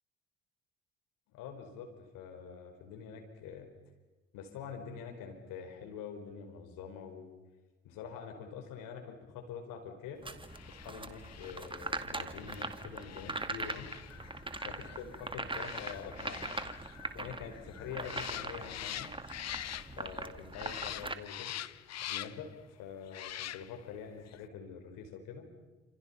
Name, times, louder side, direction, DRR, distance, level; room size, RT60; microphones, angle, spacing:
voice 1, 1.3-1.9 2.1-3.7 4.3-7.3 7.8-10.2 10.7-13.9 14.6-16.6 17.1-19.1 20.0-21.6 22.1-25.5, left 7 dB, 70° left, 5 dB, 4.9 m, -45 dB
sound 1, 10.2-21.1, right 2 dB, 15° right, 2.2 m, -41 dB
sound 2, 10.5-20.2 20.5-22.5 23.1-23.9 24.3-24.4, left 12 dB, 50° left, 0.9 m, -45 dB
29.0 x 27.5 x 5.7 m, 1.2 s
hypercardioid pair, 55°, 33 cm